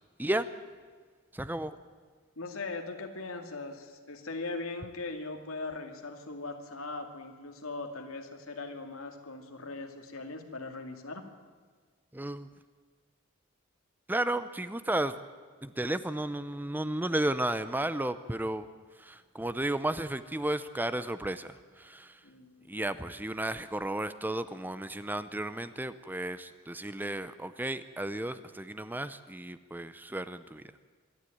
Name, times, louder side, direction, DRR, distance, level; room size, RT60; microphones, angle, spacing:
voice 1, 1.3-1.8 12.1-12.5 14.1-15.2 15.6-18.7 19.0-22.2 22.7-30.6, right 1 dB, 10° right, 13 dB, 0.6 m, -33 dB
voice 2, 2.4-11.2 22.2-22.7, left 3 dB, 90° left, 4 dB, 2.4 m, -40 dB
25.5 x 11.5 x 9.2 m, 1.5 s
head